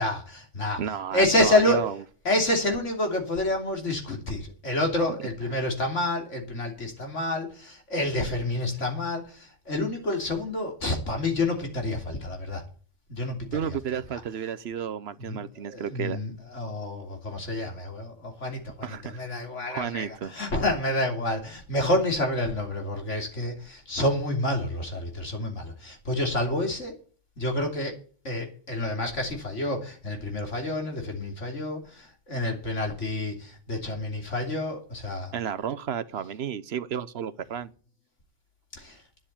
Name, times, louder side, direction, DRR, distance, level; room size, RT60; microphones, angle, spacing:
voice 1, 0.0-0.8 1.1-1.8 2.3-12.6 13.1-13.8 14.1-14.2 15.3-15.4 15.7-26.9 27.4-27.9 28.3-35.3 38.8-39.0, left 1 dB, 80° left, 3.4 m, -28 dB
voice 2, 0.8-2.0 5.1-5.2 13.5-16.2 18.8-19.4 19.7-20.3 35.3-37.7, right 8 dB, 65° right, 0.9 m, -32 dB
10.5 x 7.3 x 8.7 m
omnidirectional pair, 1.2 m